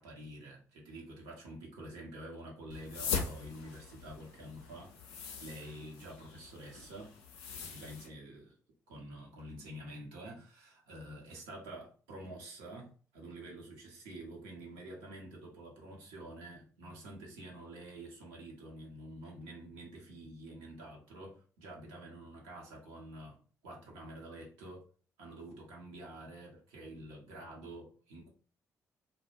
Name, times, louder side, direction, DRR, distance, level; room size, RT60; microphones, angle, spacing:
voice 1, 0.0-4.9 5.4-7.1 7.7-8.5 8.9-24.8 25.2-28.3, right 1 dB, 80° right, 0.7 m, -48 dB
sound 1, 2.7-8.1, left 6 dB, 80° left, 0.4 m, -41 dB
2.3 x 2.0 x 2.9 m
hypercardioid pair, 45°, 8 cm